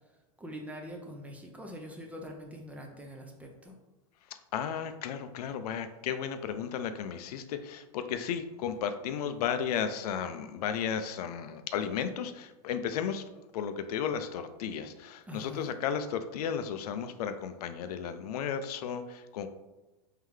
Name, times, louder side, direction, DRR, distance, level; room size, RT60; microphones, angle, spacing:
voice 1, 0.4-3.7 15.3-15.7, equal, 5° right, 2 dB, 0.4 m, -43 dB
voice 2, 4.5-13.2 13.5-19.5, left 8 dB, 75° left, 10 dB, 0.4 m, -34 dB
3.6 x 3.2 x 3.2 m, 1.1 s
supercardioid pair, 140°, 20 cm